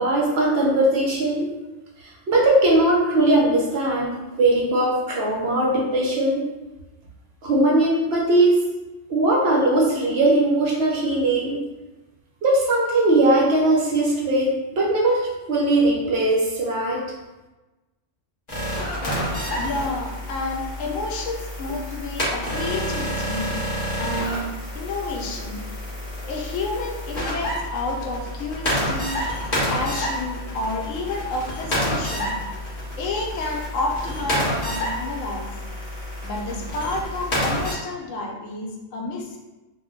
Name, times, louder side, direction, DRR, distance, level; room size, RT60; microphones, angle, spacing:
voice 1, 0.0-1.5 2.0-6.4 7.4-8.6 9.1-11.6 12.4-17.0, right 1 dB, 60° right, -3 dB, 0.8 m, -20 dB
sound 1, 18.5-37.7, equal, 35° left, 0.9 m, -29 dB
voice 2, 19.5-23.6 24.0-24.5 24.7-25.6 26.2-29.1 29.7-32.4 33.0-35.5 36.2-39.4, left 2 dB, 80° left, 0 dB, 0.9 m, -30 dB
2.5 x 2.1 x 3.6 m, 1.1 s
omnidirectional pair, 1.3 m